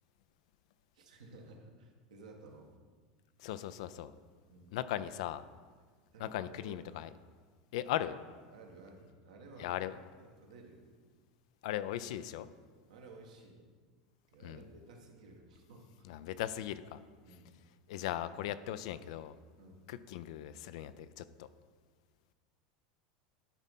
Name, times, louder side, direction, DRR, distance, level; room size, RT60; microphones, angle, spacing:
voice 1, 0.9-2.7 4.5-4.8 6.1-6.8 8.5-10.9 12.9-13.7 14.3-16.1 17.2-17.5 19.6-19.8, right 3 dB, 85° right, 1 dB, 1.6 m, -55 dB
voice 2, 3.4-4.1 4.7-5.4 6.2-7.1 7.7-8.2 9.6-10.0 11.6-12.5 14.4-14.7 16.0-17.0 17.9-19.4 19.9-21.5, left 12 dB, 70° left, 14 dB, 0.4 m, -38 dB
11.5 x 4.1 x 5.4 m, 1.5 s
hypercardioid pair, 95°, 4 cm